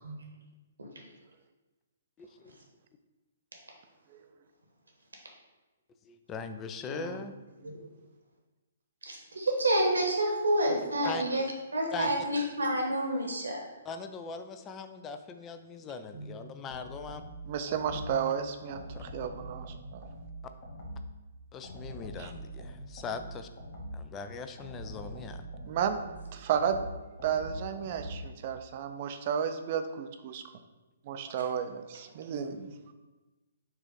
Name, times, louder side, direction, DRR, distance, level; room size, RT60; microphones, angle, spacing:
voice 1, 2.2-2.5 6.0-7.3 11.0-11.3 11.9-12.2 13.9-17.2 19.0-19.1 21.5-23.5 23.9-25.5, left 5 dB, 20° left, 8 dB, 0.3 m, -40 dB
voice 2, 6.9-7.3 17.5-19.7 19.9-20.0 22.2-22.3 25.6-26.0 26.3-26.8 27.2-30.4 31.1-32.9, right 8 dB, 45° right, 8 dB, 0.4 m, -33 dB
voice 3, 9.0-11.4 11.7-13.6 16.1-16.3 17.9-18.3, right 1 dB, 80° right, 1 dB, 1.1 m, -29 dB
sound 1, 16.7-18.2 18.7-21.2 21.6-24.1 24.6-28.4, equal, 45° left, 1.3 m, -43 dB
4.5 x 2.5 x 4.7 m, 1.1 s
figure-of-eight pair, 130°, 0 cm